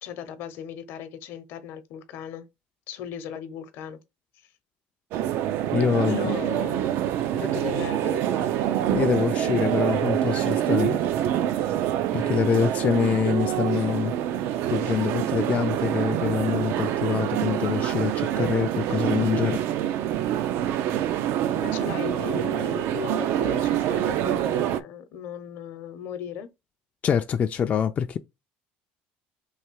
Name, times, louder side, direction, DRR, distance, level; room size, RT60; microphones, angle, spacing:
voice 1, 0.0-2.5 2.9-4.0 4.3-4.5 6.1-6.9 7.3-8.6 21.5-26.5, left 8 dB, 70° left, 0.8 m, -37 dB
sound 1, 5.1-24.8, right 11 dB, 65° right, 0.4 m, -26 dB
voice 2, 5.7-6.3 8.9-11.0 12.1-14.1 14.7-19.6 27.0-28.2, left 7 dB, 35° left, 0.3 m, -25 dB
3.3 x 2.7 x 4.6 m
cardioid pair, 125°, 4 cm